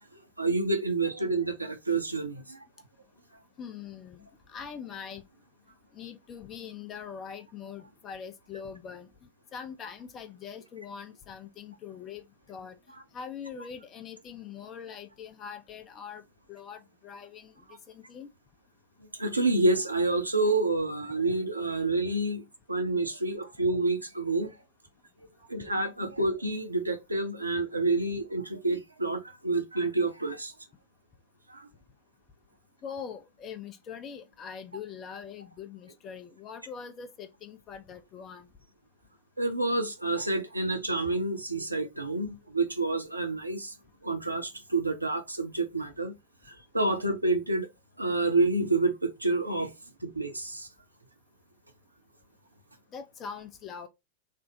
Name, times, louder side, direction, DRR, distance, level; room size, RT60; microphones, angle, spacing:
voice 1, 0.4-2.6 19.2-24.5 25.5-30.5 31.5-31.7 39.4-43.7 44.0-46.2 46.5-47.7 48.0-49.7 50.0-50.7, right 2 dB, 85° right, 0.6 m, -28 dB
voice 2, 3.6-5.2 5.9-9.1 9.5-12.8 13.1-16.2 16.5-17.5 17.9-18.3 32.8-38.5 52.9-53.9, left 7 dB, 30° left, 0.6 m, -42 dB
3.3 x 2.0 x 3.8 m
figure-of-eight pair, 90°, 0 cm